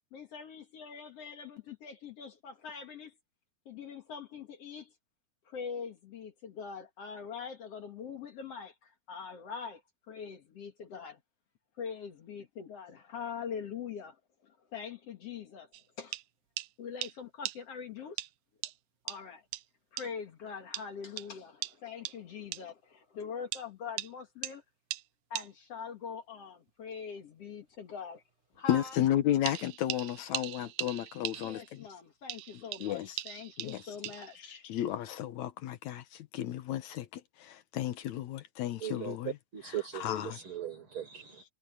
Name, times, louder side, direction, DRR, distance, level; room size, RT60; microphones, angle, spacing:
voice 1, 0.1-3.1 3.7-4.9 5.5-9.8 10.1-11.2 11.8-15.7 16.0-16.2 16.8-18.2 19.0-19.4 19.9-24.6 25.3-28.2 28.6-29.0 31.4-34.7, left 6 dB, 55° left, 2.5 m, -43 dB
sound 1, 15.7-15.8 16.1-16.2 16.6-16.7 17.0-17.1 17.5-17.6 18.2-18.3 18.6-18.7 19.1-19.2 19.5-19.6 20.0-20.1 20.7-20.9 21.2-21.3 21.6-21.7 22.1-22.2 22.5-22.6 23.5-23.7 24.0-24.1 24.4-24.5 24.9-25.0 25.4-25.5 29.5-31.8 32.3-34.4, right 15 dB, 85° right, 2.2 m, -40 dB
voice 2, 28.7-31.9 32.8-33.2 33.6-34.0 34.4-39.3 39.9-40.4, left 12 dB, 75° left, 2.3 m, -33 dB
voice 3, 38.8-41.4, right 10 dB, 45° right, 5.9 m, -39 dB
omnidirectional pair, 3.4 m